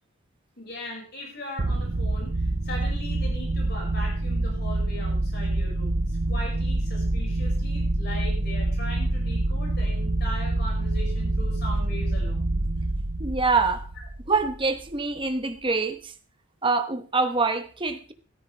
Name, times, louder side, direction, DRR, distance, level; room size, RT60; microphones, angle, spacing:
voice 1, 0.6-6.0 6.3-12.4, left 1 dB, 50° left, 5.9 m, -39 dB
sound 1, 1.6-14.9, right 2 dB, 45° right, 0.7 m, -26 dB
voice 2, 13.2-13.8 14.3-16.1 16.6-18.1, right 4 dB, 25° right, 1.1 m, -25 dB
14.0 x 13.5 x 3.4 m
head